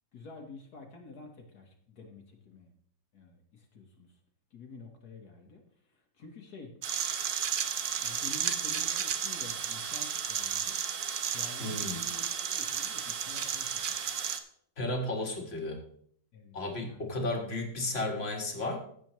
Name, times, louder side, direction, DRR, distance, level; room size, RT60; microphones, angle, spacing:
voice 1, 0.1-2.7 3.1-4.2 4.5-6.7 7.0-7.2 8.0-10.8 11.2-14.1 16.3-16.6 16.8-17.3, left 3 dB, 60° left, 2 dB, 1.7 m, -49 dB
sound 1, 6.8-14.4, right 8 dB, 65° right, 1.3 m, -33 dB
voice 2, 11.6-12.0 14.8-15.8 16.5-18.8, left 2 dB, 35° left, 2 dB, 1.9 m, -33 dB
15.5 x 7.9 x 3.1 m, 0.64 s
omnidirectional pair, 1.9 m